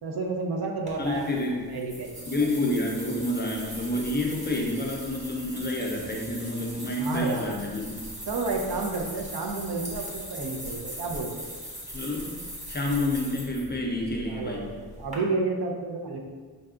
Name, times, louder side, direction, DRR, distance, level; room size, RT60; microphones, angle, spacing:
voice 1, 0.0-2.3 7.0-7.5 8.3-11.5 14.3-16.2, right 3 dB, 65° right, 0 dB, 0.7 m, -31 dB
sound 1, 0.9-15.2, equal, 20° right, 0.8 m, -40 dB
voice 2, 1.0-1.6 2.3-8.0 11.9-12.4 12.7-14.7, left 1 dB, 25° left, -1 dB, 0.4 m, -29 dB
5.3 x 2.3 x 3.7 m, 1.5 s
wide cardioid pair, 170°, 39 cm